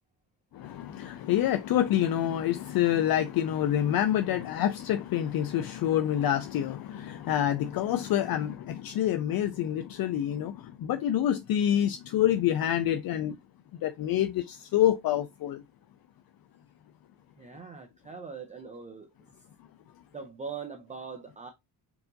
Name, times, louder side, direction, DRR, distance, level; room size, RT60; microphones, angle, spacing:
voice 1, 0.5-13.4 13.8-15.6, left 11 dB, 60° left, 0.5 m, -27 dB
voice 2, 17.4-19.1 20.1-21.5, right 5 dB, 20° right, 0.6 m, -41 dB
4.7 x 2.6 x 3.8 m
cardioid pair, 150°, 42 cm